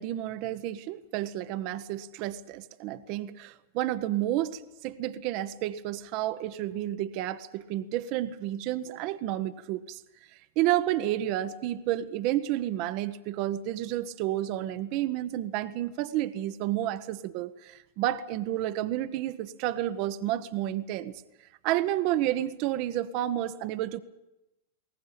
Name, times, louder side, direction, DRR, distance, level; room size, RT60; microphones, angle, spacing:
voice 1, 0.0-10.0 10.6-21.2 21.6-24.0, right 13 dB, 50° right, 13 dB, 0.9 m, -30 dB
21.0 x 18.5 x 8.8 m, 0.95 s
figure-of-eight pair, 95°, 0 cm